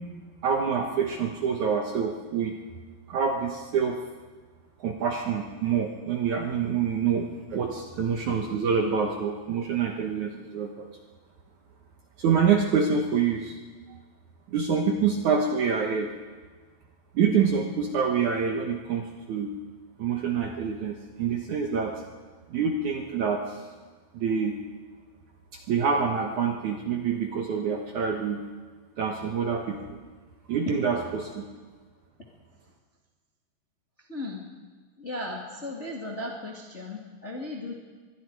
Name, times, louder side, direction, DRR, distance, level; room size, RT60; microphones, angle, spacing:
voice 1, 0.4-2.6 3.1-4.0 4.8-10.9 12.2-13.6 14.5-16.1 17.1-19.5 20.0-21.9 22.5-23.6 24.1-24.6 25.7-28.4 29.0-30.0 30.5-31.4, right 6 dB, 60° right, 2 dB, 2.2 m, -26 dB
voice 2, 34.1-34.4 35.0-37.7, left 2 dB, 25° left, -1 dB, 1.6 m, -36 dB
24.5 x 22.0 x 4.8 m, 1.4 s
omnidirectional pair, 4.8 m